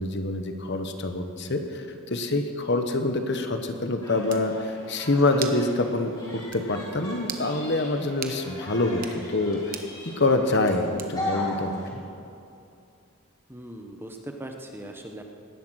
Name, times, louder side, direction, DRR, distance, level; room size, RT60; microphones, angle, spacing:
voice 1, 0.0-1.8 2.1-9.0 9.3-9.8 10.2-12.0, left 2 dB, 50° left, 6 dB, 1.1 m, -26 dB
sound 1, 4.0-11.9, left 2 dB, 20° left, 3.7 m, -38 dB
sound 2, 4.3-4.5 5.4-5.7 6.0-6.1 6.5-6.7 7.2-7.5 8.2-8.4 8.9-9.2 9.7-9.9 11.0-11.3, right 8 dB, 40° right, 1.0 m, -37 dB
voice 2, 13.5-15.2, right 1 dB, 10° right, 3 dB, 0.9 m, -39 dB
17.5 x 11.5 x 6.4 m, 2.6 s
head